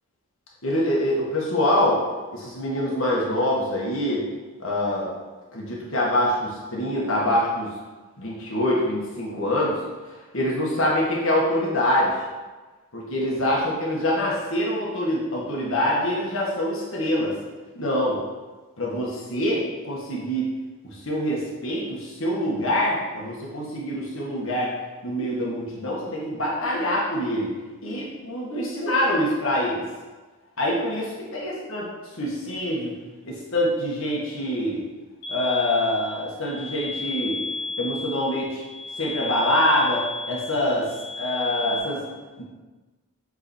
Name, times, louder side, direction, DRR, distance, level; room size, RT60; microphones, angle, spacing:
voice 1, 0.6-2.0 2.3-4.3 4.6-5.1 5.5-7.7 8.2-9.8 10.3-12.1 12.9-17.3 17.7-18.2 18.8-20.5 20.8-24.7 25.0-27.5 27.8-29.8 30.6-31.0 31.3-31.9 32.2-32.9 33.2-34.8 35.3-37.4 37.8-38.6 39.0-40.9 41.2-42.0 42.4-42.5, left 1 dB, 60° left, -4 dB, 1.6 m, -25 dB
sound 1, 35.2-41.8, left 3 dB, 85° left, 1.8 m, -33 dB
8.2 x 4.0 x 4.4 m, 1.3 s
head